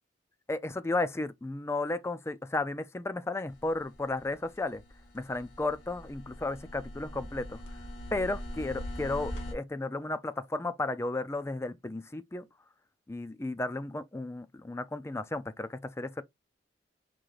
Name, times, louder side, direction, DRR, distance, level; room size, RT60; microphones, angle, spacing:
voice 1, 0.5-4.8 5.1-7.6 8.1-12.5 13.1-16.2, left 2 dB, 15° left, 0.4 m, -34 dB
sound 1, 3.5-9.5, left 1 dB, 85° left, 1.8 m, -42 dB
4.7 x 3.7 x 2.4 m
head